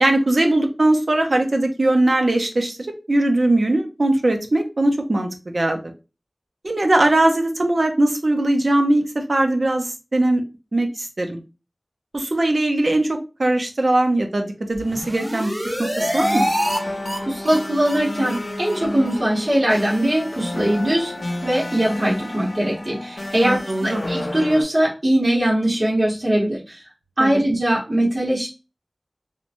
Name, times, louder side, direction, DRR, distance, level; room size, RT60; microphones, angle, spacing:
voice 1, 0.0-5.9 6.6-10.4 10.7-11.4 12.1-16.5 23.4-24.0 27.2-27.3, right 1 dB, 80° right, 4 dB, 0.5 m, -20 dB
sound 1, 14.8-16.8 17.0-17.2 17.4-17.6 17.8-18.0 18.2-18.4 18.6-18.8 19.1-19.2 19.5-19.6 19.9-20.0, equal, 10° right, 1.0 m, -25 dB
sound 2, 16.0-24.6, left 1 dB, 85° left, 0.4 m, -31 dB
voice 2, 17.2-21.1 21.4-26.8 27.2-28.5, right 1 dB, 60° right, -7 dB, 1.0 m, -21 dB
2.9 x 2.1 x 2.5 m, 0.29 s
wide cardioid pair, 45°, 0 cm